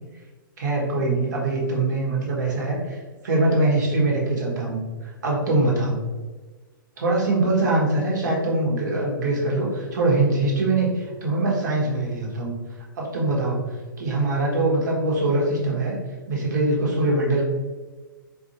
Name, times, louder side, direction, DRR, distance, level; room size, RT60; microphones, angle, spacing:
voice 1, 0.6-6.0 7.0-12.5 13.0-13.6 14.0-16.0 16.3-17.4, right 2 dB, 55° right, -2 dB, 1.1 m, -23 dB
4.2 x 2.6 x 2.8 m, 1.3 s
figure-of-eight pair, 110°, 12 cm